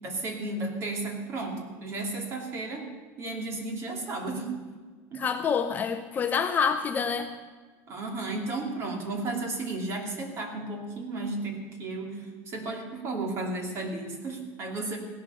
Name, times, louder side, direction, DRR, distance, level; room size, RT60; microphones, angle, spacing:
voice 1, 0.0-2.9 3.2-4.5 5.1-5.3 7.9-15.0, right 2 dB, 30° right, 3 dB, 2.7 m, -33 dB
voice 2, 5.1-7.3, left 6 dB, 20° left, 7 dB, 0.6 m, -27 dB
16.5 x 11.0 x 7.0 m, 1.4 s
cardioid pair, 170°, 8 cm